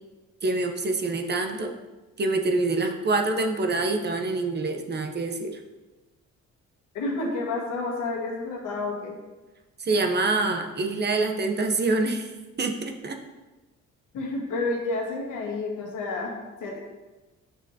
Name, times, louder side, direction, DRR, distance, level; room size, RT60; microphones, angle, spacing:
voice 1, 0.4-1.7 2.2-5.6 9.8-12.3 12.6-13.2, right 3 dB, 35° right, 4 dB, 0.7 m, -26 dB
voice 2, 6.9-9.2 14.1-16.8, left 3 dB, 85° left, -1 dB, 1.5 m, -30 dB
6.6 x 5.9 x 2.7 m, 1.2 s
cardioid pair, 90°, 30 cm